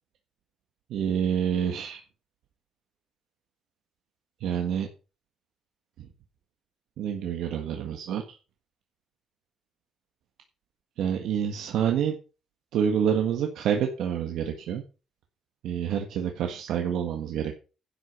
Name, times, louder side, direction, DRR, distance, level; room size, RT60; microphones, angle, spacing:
voice 1, 0.9-2.0 4.4-4.9 7.0-8.2 11.0-12.1 12.7-14.8 15.6-17.5, right 8 dB, 75° right, 4 dB, 1.6 m, -27 dB
11.0 x 8.3 x 5.5 m, 0.34 s
cardioid pair, 180°, 0 cm